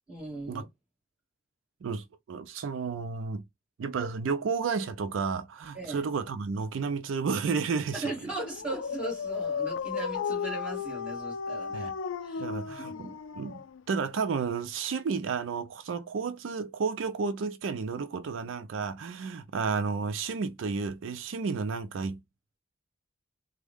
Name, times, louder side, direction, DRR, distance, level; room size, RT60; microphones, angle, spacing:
voice 1, 0.1-0.7 5.8-6.0 7.9-11.9 12.2-13.2, right 2 dB, 5° right, 1.8 m, -38 dB
voice 2, 1.8-3.4 3.8-8.1 11.7-11.9 12.4-22.2, right 5 dB, 75° right, 0.4 m, -32 dB
Dog, 8.3-14.0, left 6 dB, 90° left, 0.4 m, -35 dB
3.5 x 2.1 x 3.4 m
head